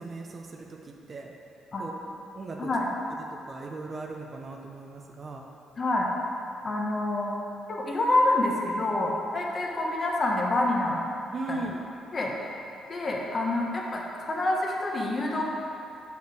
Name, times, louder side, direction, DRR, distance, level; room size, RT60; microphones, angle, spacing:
voice 1, 0.0-1.3 1.8-2.7 3.5-5.5 11.3-11.9, right 3 dB, 40° right, 1 dB, 0.9 m, -38 dB
voice 2, 5.8-6.1 6.6-7.3 7.7-10.9 11.5-11.6 12.1-12.3 12.9-14.0 14.3-15.4, left 2 dB, 40° left, -2 dB, 1.4 m, -27 dB
6.5 x 5.8 x 6.3 m, 2.7 s
cardioid pair, 90°, 0 cm